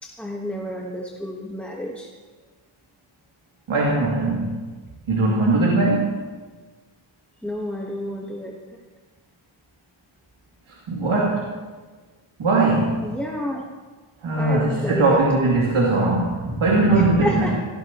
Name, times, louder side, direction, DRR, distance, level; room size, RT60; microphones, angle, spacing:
voice 1, 0.0-2.1 7.4-8.5 13.0-13.6 14.4-15.2 17.2-17.6, equal, 5° left, -3 dB, 1.4 m, -29 dB
voice 2, 3.7-4.6 5.1-6.3 10.9-11.5 12.4-12.9 14.2-17.6, right 2 dB, 75° right, -5 dB, 2.9 m, -20 dB
18.0 x 16.5 x 3.1 m, 1.4 s
wide cardioid pair, 125°, 49 cm